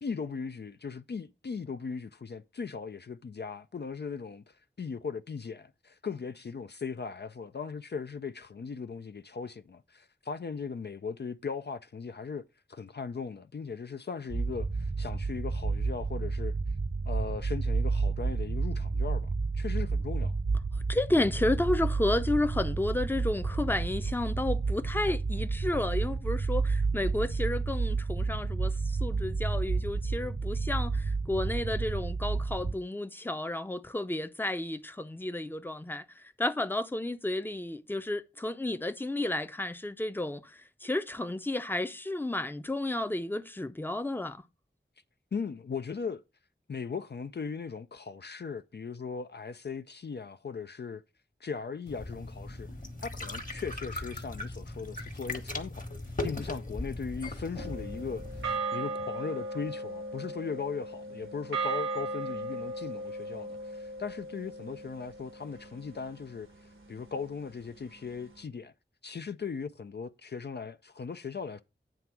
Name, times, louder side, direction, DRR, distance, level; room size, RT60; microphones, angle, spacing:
voice 1, 0.0-12.4 12.7-16.6 17.1-20.4 45.3-46.2 46.7-51.0 51.4-52.7 53.0-55.9 56.2-66.5 66.9-68.7 69.0-71.6, left 5 dB, 55° left, 0.4 m, -38 dB
sound 1, 14.3-32.7, right 4 dB, 45° right, 0.8 m, -31 dB
voice 2, 20.9-44.4, left 1 dB, 10° left, 0.6 m, -32 dB
sound 2, 51.9-58.6, left 2 dB, 40° left, 1.4 m, -38 dB
sound 3, 57.6-66.1, right 2 dB, 85° right, 1.1 m, -37 dB
9.2 x 3.4 x 5.9 m
wide cardioid pair, 55°, 20 cm